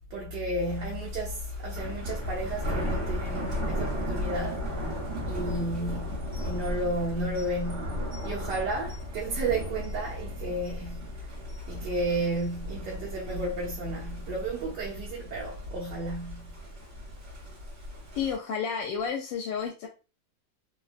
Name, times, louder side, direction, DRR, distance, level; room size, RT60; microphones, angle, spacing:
voice 1, 0.1-4.8 5.2-11.1 11.7-16.6, right 1 dB, 75° right, 1.2 m, -32 dB
Thunder, 0.6-18.3, equal, 45° right, 1.6 m, -36 dB
voice 2, 18.1-19.9, left 6 dB, 80° left, 1.2 m, -31 dB
3.2 x 2.2 x 2.4 m
omnidirectional pair, 2.0 m